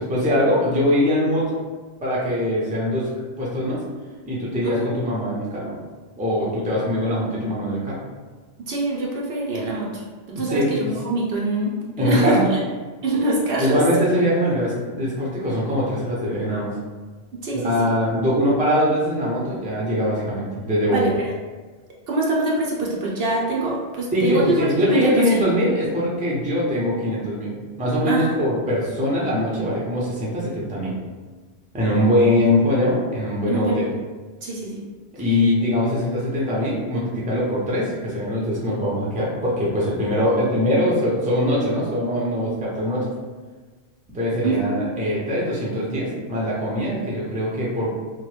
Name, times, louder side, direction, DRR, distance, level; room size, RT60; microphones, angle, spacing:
voice 1, 0.0-1.4 2.0-3.1 3.4-3.8 4.2-5.7 6.2-8.0 10.5-10.9 12.0-12.4 13.6-16.7 17.5-21.1 24.1-27.5 27.8-30.9 31.7-33.9 35.2-43.1 44.1-47.9, left 1 dB, 10° right, -5 dB, 0.5 m, -22 dB
voice 2, 8.7-10.0 10.3-12.6 13.0-13.8 17.4-17.9 20.9-21.3 22.1-24.5 24.9-25.4 28.0-28.4 33.5-33.8 34.4-34.8 44.4-44.8, right 2 dB, 65° right, -3 dB, 0.8 m, -24 dB
3.0 x 2.2 x 3.2 m, 1.4 s
omnidirectional pair, 1.2 m